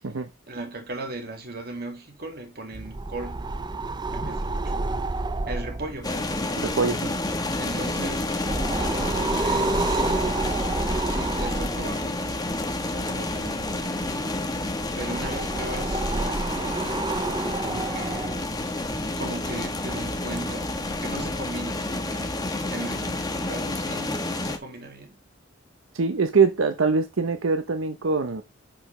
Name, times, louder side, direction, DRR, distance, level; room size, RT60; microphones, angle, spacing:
voice 1, 0.5-3.4 4.1-5.0 5.5-6.3 7.6-8.3 8.8-10.5 11.0-14.4 14.9-17.0 17.6-18.4 19.2-22.4 22.7-25.2, right 2 dB, 50° right, 2.2 m, -38 dB
sound 1, 2.7-21.5, right 2 dB, 20° right, 0.5 m, -31 dB
sound 2, 6.0-24.6, left 2 dB, 20° left, 1.2 m, -30 dB
voice 2, 6.6-7.1 25.9-28.4, right 4 dB, 85° right, 0.8 m, -23 dB
11.0 x 5.0 x 3.2 m
head